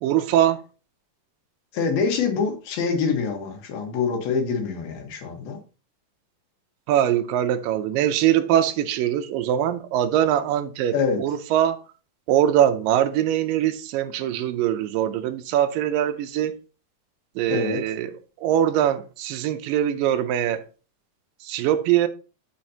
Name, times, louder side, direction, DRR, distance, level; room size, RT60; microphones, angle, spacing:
voice 1, 0.0-0.6 6.9-11.8 12.3-16.6 17.4-18.1 18.4-20.6 21.4-22.1, right 11 dB, 80° right, 2.2 m, -22 dB
voice 2, 1.7-5.6 10.9-11.2 17.5-17.8, left 5 dB, 80° left, 3.3 m, -25 dB
13.5 x 5.0 x 2.8 m
omnidirectional pair, 4.2 m